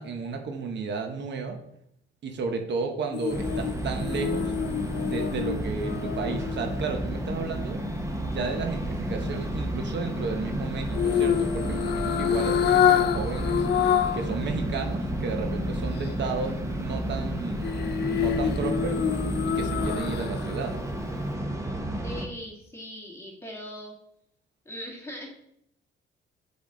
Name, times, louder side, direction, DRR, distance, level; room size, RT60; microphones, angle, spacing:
voice 1, 0.0-1.6 2.2-4.5 5.0-7.8 8.2-13.6 14.1-17.6 17.9-19.0 19.4-20.7, right 4 dB, 65° right, 4 dB, 0.9 m, -33 dB
sound 1, 3.1-7.4 10.9-14.3 14.7-14.8 17.6-20.5 20.9-21.0, left 9 dB, 60° left, 0.4 m, -27 dB
sound 2, 3.3-22.3, equal, 15° right, 1.0 m, -31 dB
sound 3, 10.9-13.5, equal, 80° left, 0.9 m, -47 dB
voice 2, 22.0-23.9 24.7-25.3, equal, 15° left, -2 dB, 1.9 m, -40 dB
7.0 x 4.1 x 3.8 m, 0.73 s
cardioid pair, 90°, 20 cm